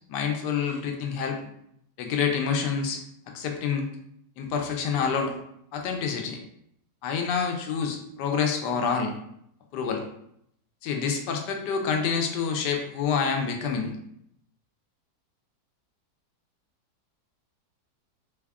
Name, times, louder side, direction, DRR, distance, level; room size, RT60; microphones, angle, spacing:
voice 1, 0.1-1.4 2.0-3.0 3.3-3.8 4.4-5.3 5.7-6.4 7.0-9.1 9.7-10.0 10.8-13.9, left 6 dB, 80° left, 3 dB, 1.2 m, -27 dB
3.4 x 2.3 x 3.4 m, 0.73 s
omnidirectional pair, 1.9 m